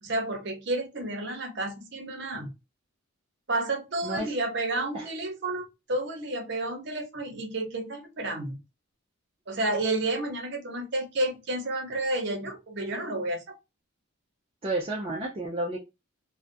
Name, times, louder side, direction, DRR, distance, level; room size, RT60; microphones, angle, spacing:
voice 1, 0.0-2.5 3.5-8.6 9.5-13.4, right 2 dB, 55° right, 0.7 m, -31 dB
voice 2, 4.0-4.3 4.9-5.1 14.6-15.8, right 2 dB, 25° right, 0.3 m, -31 dB
2.4 x 2.1 x 2.5 m
head